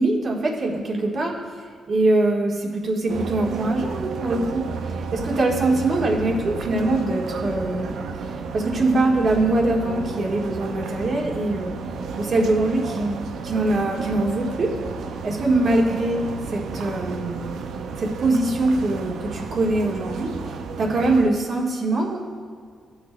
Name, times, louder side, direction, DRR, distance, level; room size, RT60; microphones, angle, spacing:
voice 1, 0.0-1.3 1.9-4.7 5.1-8.0 8.5-11.8 12.2-14.7 15.2-17.4 18.0-20.3 20.8-22.2, right 2 dB, 45° right, -1 dB, 1.5 m, -23 dB
sound 1, 3.1-21.3, right 5 dB, 75° right, 0.5 m, -32 dB
18.0 x 6.0 x 2.2 m, 2.1 s
cardioid pair, 120°, 0 cm